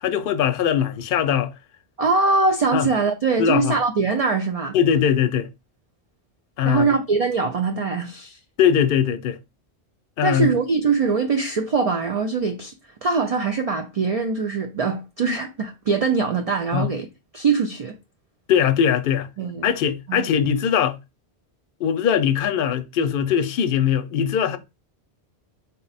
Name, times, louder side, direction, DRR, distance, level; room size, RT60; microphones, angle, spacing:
voice 1, 0.0-1.5 2.7-2.9 3.4-3.7 4.7-5.5 6.6-7.0 8.6-9.4 10.2-10.5 16.7-16.9 18.5-19.3 19.6-21.0 21.8-24.6, left 8 dB, 60° left, 0.7 m, -21 dB
voice 2, 2.0-4.8 6.6-8.4 10.2-12.7 13.0-17.1 17.3-17.9 19.4-19.7 20.1-20.3, right 4 dB, 55° right, 0.4 m, -22 dB
4.0 x 2.1 x 4.0 m
omnidirectional pair, 1.1 m